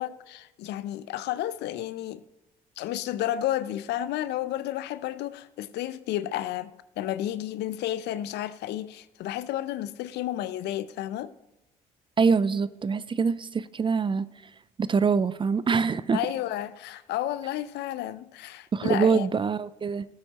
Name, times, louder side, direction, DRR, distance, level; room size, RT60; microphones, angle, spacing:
voice 1, 0.0-2.2 2.8-11.3 16.1-19.3, left 12 dB, 65° left, 0.6 m, -32 dB
voice 2, 12.2-14.2 14.8-16.2 18.7-20.0, right 5 dB, 25° right, 0.5 m, -24 dB
18.0 x 8.5 x 3.0 m
hypercardioid pair, 55°, 19 cm